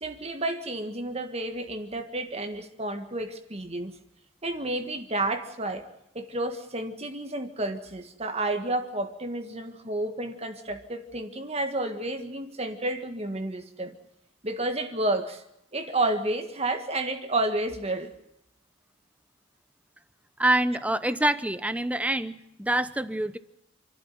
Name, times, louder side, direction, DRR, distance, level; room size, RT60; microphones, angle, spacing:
voice 1, 0.0-3.9 4.4-5.9 6.1-13.9 14.4-15.4 15.7-18.1, right 2 dB, 30° right, 7 dB, 1.7 m, -31 dB
voice 2, 20.4-23.4, right 1 dB, 5° right, 14 dB, 0.8 m, -26 dB
28.0 x 12.0 x 9.3 m, 0.82 s
head